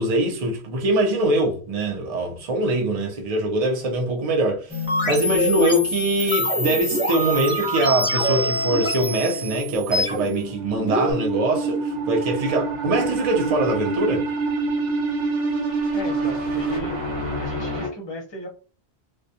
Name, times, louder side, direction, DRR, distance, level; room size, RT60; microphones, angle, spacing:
voice 1, 0.0-4.8 5.0-14.2, right 1 dB, 45° right, 0.6 m, -23 dB
sound 1, 4.7-11.1, equal, 5° right, 0.9 m, -25 dB
sound 2, 9.1-17.9, right 3 dB, 70° right, 1.1 m, -27 dB
voice 2, 15.9-17.0 17.4-18.5, left 1 dB, 30° left, 0.7 m, -35 dB
2.2 x 2.1 x 2.6 m
omnidirectional pair, 1.1 m